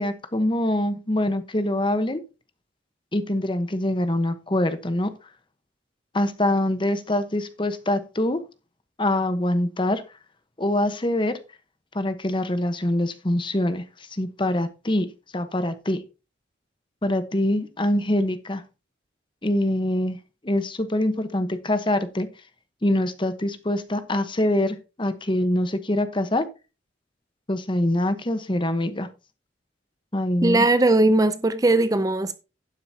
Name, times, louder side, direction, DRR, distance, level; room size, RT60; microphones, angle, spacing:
voice 1, 0.0-2.2 3.1-5.1 6.1-8.4 9.0-10.0 10.6-11.4 11.9-13.8 14.1-16.0 17.0-18.6 19.4-20.2 20.4-22.3 22.8-26.5 27.5-29.1 30.1-30.7, left 1 dB, 25° left, 1.1 m, -24 dB
voice 2, 30.4-32.4, right 2 dB, 20° right, 0.5 m, -19 dB
12.0 x 9.5 x 2.8 m
head